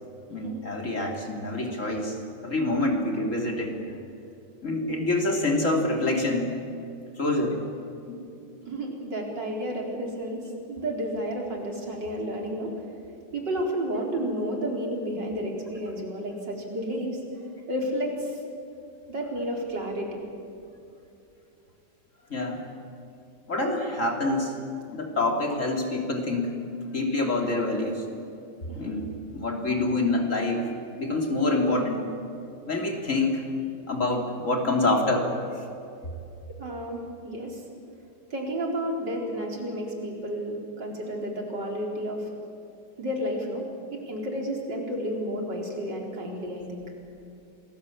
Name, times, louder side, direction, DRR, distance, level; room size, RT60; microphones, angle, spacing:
voice 1, 0.3-2.2 2.4-3.7 4.6-6.5 7.2-7.6 8.1-8.2 22.3-22.6 23.5-24.6 24.9-26.5 26.9-28.1 28.8-29.1 29.3-30.6 31.0-32.1 32.7-33.5 33.9-35.3, left 2 dB, 45° left, 1 dB, 3.5 m, -26 dB
voice 2, 8.7-10.4 10.7-12.7 13.3-17.2 17.7-18.1 19.1-20.2 28.7-29.0 36.6-37.6 38.3-42.2 43.0-43.6 43.9-46.8, equal, 75° right, 0 dB, 4.9 m, -31 dB
27.5 x 20.5 x 8.7 m, 2.7 s
omnidirectional pair, 1.9 m